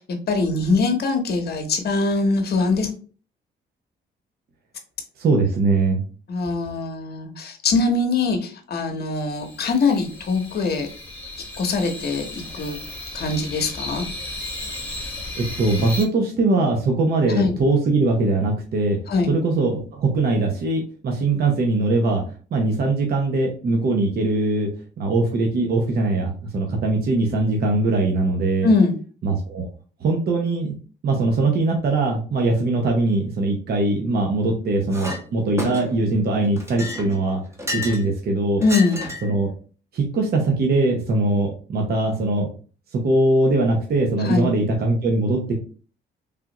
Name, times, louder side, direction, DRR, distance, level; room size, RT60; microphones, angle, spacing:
voice 1, 0.0-2.9 6.3-10.9 11.6-12.8 13.1-14.0 17.3-17.5 19.1-19.3 28.6-29.0 38.6-39.1 44.2-44.5, left 3 dB, 55° left, 5 dB, 0.8 m, -22 dB
voice 2, 5.2-6.0 15.4-19.0 19.3-22.2 22.5-24.7 25.0-28.7 29.2-29.7 30.0-30.8 31.0-37.4 37.7-38.6 39.2-39.5 39.9-42.5 42.9-45.5, right 2 dB, 50° right, 1 dB, 0.7 m, -21 dB
sound 1, 9.1-16.0, left 2 dB, 5° left, 1.1 m, -35 dB
Chink clink, 34.9-35.2 35.6-36.1 36.6-38.1 38.6-39.3, left 1 dB, 15° right, 0.9 m, -30 dB
3.4 x 2.4 x 2.9 m, 0.39 s
cardioid pair, 90°, 20 cm